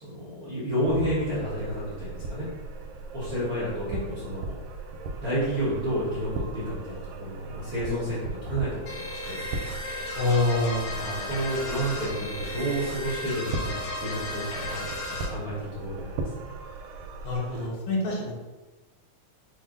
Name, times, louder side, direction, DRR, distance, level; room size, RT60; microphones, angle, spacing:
voice 1, 0.0-2.5 3.1-4.6 5.2-9.5 10.9-16.4, equal, 60° right, -9 dB, 0.9 m, -31 dB
sound 1, 0.8-17.7, right 3 dB, 85° right, 1.9 m, -38 dB
sound 2, 8.9-15.3, left 1 dB, 65° left, 1.8 m, -35 dB
voice 2, 10.2-10.8 17.2-18.4, left 2 dB, 80° left, -3 dB, 2.4 m, -26 dB
5.7 x 2.1 x 3.7 m, 1.2 s
omnidirectional pair, 3.3 m